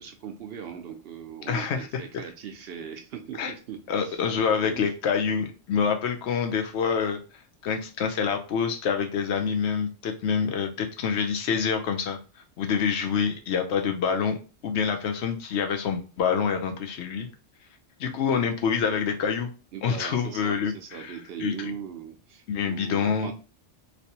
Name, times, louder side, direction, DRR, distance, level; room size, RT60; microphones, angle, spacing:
voice 1, 0.0-4.2 4.6-4.9 18.3-18.4 19.7-23.3, right 8 dB, 65° right, 5 dB, 0.8 m, -40 dB
voice 2, 1.5-1.8 3.4-3.5 3.9-7.2 7.6-12.2 12.6-14.4 14.6-17.3 18.0-19.5 19.8-21.7 22.5-23.3, left 6 dB, 70° left, 5 dB, 0.9 m, -26 dB
3.3 x 2.6 x 2.8 m, 0.34 s
omnidirectional pair, 1.2 m